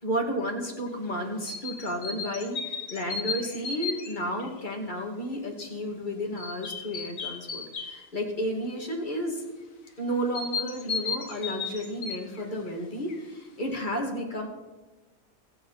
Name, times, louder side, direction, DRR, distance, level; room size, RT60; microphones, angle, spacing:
voice 1, 0.0-9.4 10.0-14.5, equal, 35° left, 1 dB, 2.7 m, -32 dB
sound 1, 1.5-4.6 6.4-8.0 10.3-12.7 13.1-13.2, left 5 dB, 70° left, 1.8 m, -35 dB
24.0 x 8.5 x 4.3 m, 1.2 s
omnidirectional pair, 1.5 m